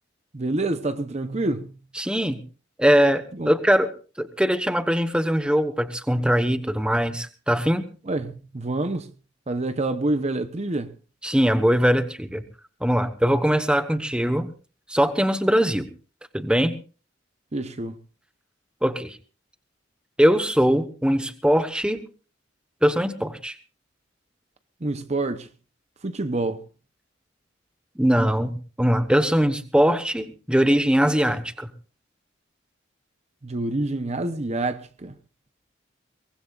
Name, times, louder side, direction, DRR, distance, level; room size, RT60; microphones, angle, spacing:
voice 1, 0.3-1.7 3.4-3.5 8.1-9.1 9.5-10.9 17.5-18.0 24.8-25.5 26.0-26.6 33.4-35.1, right 2 dB, 35° right, 0.8 m, -27 dB
voice 2, 2.0-2.4 2.8-3.9 4.2-7.9 11.2-12.4 12.8-14.5 14.9-15.9 16.3-16.7 18.8-19.2 20.2-22.0 22.8-23.5 28.0-31.7, equal, 5° right, 1.1 m, -21 dB
23.0 x 19.5 x 2.5 m
head